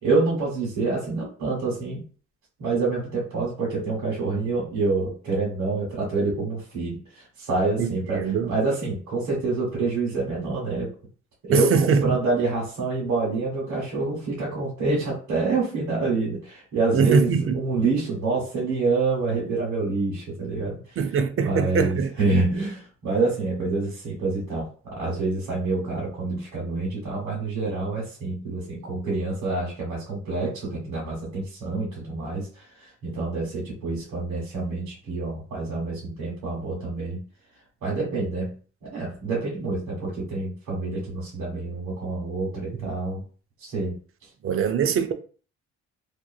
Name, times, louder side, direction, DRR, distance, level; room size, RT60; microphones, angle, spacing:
voice 1, 0.0-2.0 2.6-10.9 11.4-21.1 21.4-37.2 37.8-38.5 38.8-43.2 43.6-44.0, right 3 dB, 75° right, 1.3 m, -27 dB
voice 2, 7.8-8.5 11.5-12.2 16.9-17.6 21.0-22.1 42.8-42.9 44.4-45.1, right 6 dB, 45° right, 0.5 m, -22 dB
2.8 x 2.6 x 2.3 m
cardioid pair, 90°, 30 cm